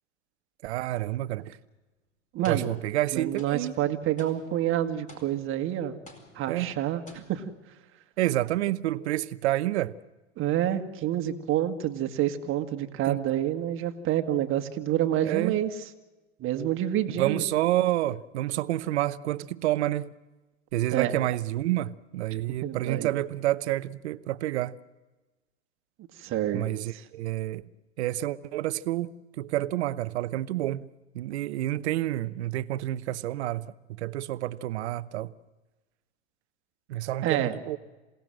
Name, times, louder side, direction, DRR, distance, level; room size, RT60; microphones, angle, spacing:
voice 1, 0.6-1.5 2.5-3.7 6.5-6.7 8.2-9.9 13.1-13.2 15.2-15.6 17.2-20.1 20.7-24.7 26.5-27.6 28.0-30.9 31.1-33.7 34.0-35.3 36.9-37.8, right 15 dB, 65° right, 0.9 m, -29 dB
sound 1, 1.4-1.6 2.4-3.1 3.4-5.7 6.1-6.8 7.1-7.6, left 1 dB, 20° left, 4.6 m, -52 dB
voice 2, 2.3-2.7 3.1-6.0 6.3-7.4 10.4-15.7 16.4-17.4 20.9-21.1 22.6-23.1 26.2-26.6 26.9-27.0 37.2-37.5, right 12 dB, 35° right, 1.8 m, -28 dB
27.5 x 17.5 x 7.7 m
hypercardioid pair, 105°, 36 cm